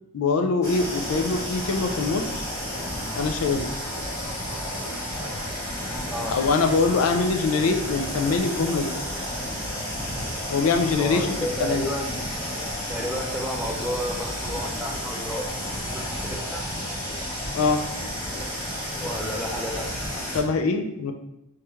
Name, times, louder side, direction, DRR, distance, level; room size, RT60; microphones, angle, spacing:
voice 1, 0.1-2.4 3.1-3.7 6.3-8.9 10.5-11.8 17.5-17.8 20.3-21.1, left 4 dB, 65° left, 6 dB, 0.4 m, -23 dB
sound 1, 0.6-20.4, equal, 15° left, 1.2 m, -31 dB
voice 2, 11.0-12.2 12.9-15.5 15.8-16.7 19.0-20.1, equal, 5° right, 1 dB, 0.4 m, -32 dB
3.4 x 3.2 x 2.9 m, 0.86 s
head